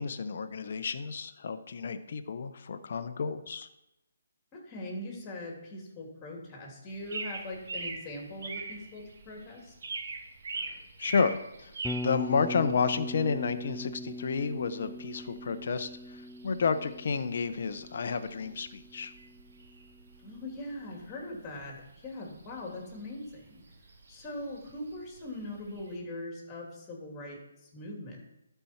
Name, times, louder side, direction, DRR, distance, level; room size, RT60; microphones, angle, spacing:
voice 1, 0.0-3.7 10.6-19.1, left 5 dB, 55° left, 9 dB, 0.7 m, -31 dB
voice 2, 4.5-9.7 20.2-23.6 24.1-28.3, left 1 dB, 20° left, 0 dB, 2.6 m, -41 dB
sound 1, 6.9-26.0, right 3 dB, 65° right, 1.6 m, -45 dB
Bass guitar, 11.8-19.9, left 1 dB, ahead, 0.3 m, -41 dB
12.5 x 4.6 x 4.4 m, 0.89 s
hypercardioid pair, 155°, 0 cm